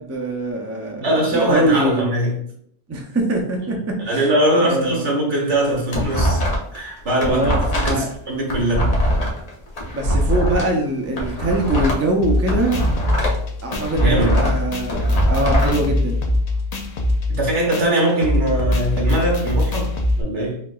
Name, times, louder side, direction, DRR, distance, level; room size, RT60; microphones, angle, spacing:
voice 1, 0.0-2.1 2.9-4.3 4.6-5.0 7.2-8.1 9.9-12.8 13.6-16.2, right 1 dB, 25° right, 1 dB, 0.3 m, -23 dB
voice 2, 1.0-2.4 4.1-6.4 6.7-9.0 14.0-14.4 17.3-20.6, right 1 dB, 80° right, -1 dB, 1.4 m, -21 dB
sound 1, 5.5-6.8 7.1-10.6 11.1-13.4 13.7-15.7, equal, 35° left, 0.8 m, -22 dB
sound 2, 12.2-20.2, left 1 dB, 55° left, 0.4 m, -22 dB
4.3 x 2.8 x 2.3 m, 0.66 s
omnidirectional pair, 1.2 m